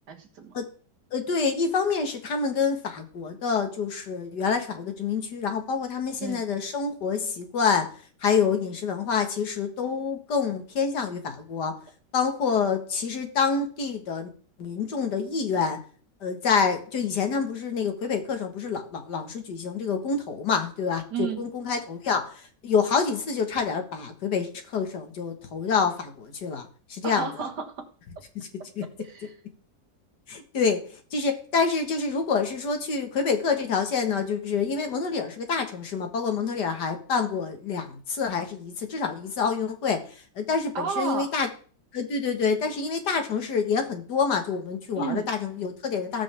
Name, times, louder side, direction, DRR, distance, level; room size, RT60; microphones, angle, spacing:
voice 1, 0.1-0.6 6.2-6.4 21.1-21.4 27.0-27.9 29.0-29.3 40.8-41.3 45.0-45.3, right 6 dB, 70° right, 5 dB, 2.0 m, -32 dB
voice 2, 1.1-11.7 12.1-14.3 14.6-15.8 16.2-27.5 28.4-28.5 28.8-28.9 30.3-41.5 41.9-46.2, left 5 dB, 70° left, 6 dB, 2.1 m, -27 dB
17.5 x 6.3 x 3.5 m, 0.41 s
omnidirectional pair, 1.9 m